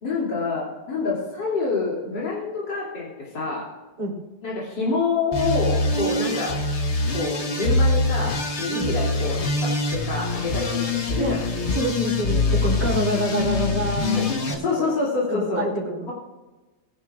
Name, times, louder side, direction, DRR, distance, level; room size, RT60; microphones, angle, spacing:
voice 1, 0.0-3.7 4.4-6.6 7.1-11.5 14.1-15.7, left 4 dB, 80° left, -7 dB, 3.6 m, -27 dB
sound 1, 5.3-14.5, left 2 dB, 45° left, 1.3 m, -24 dB
voice 2, 11.7-14.9 15.3-16.1, right 1 dB, 70° right, -2 dB, 3.7 m, -27 dB
20.0 x 11.0 x 2.5 m, 1.2 s
omnidirectional pair, 1.9 m